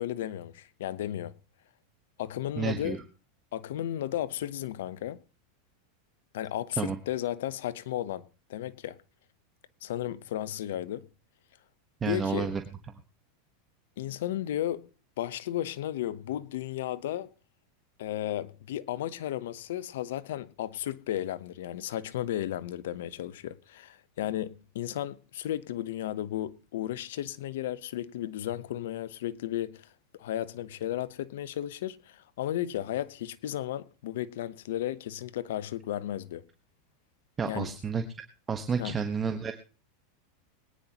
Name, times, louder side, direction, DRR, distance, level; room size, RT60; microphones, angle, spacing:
voice 1, 0.0-1.3 2.2-3.0 3.5-5.2 6.3-9.0 9.8-11.0 12.0-12.5 14.0-14.9 15.2-17.3 18.0-36.4 37.4-37.7 38.8-39.0, left 12 dB, 75° left, 0.8 m, -34 dB
voice 2, 2.6-3.0 6.8-7.0 12.0-12.6 37.4-38.0 38.5-39.5, right 5 dB, 20° right, 1.2 m, -30 dB
22.0 x 9.7 x 3.0 m
supercardioid pair, 120°, 0 cm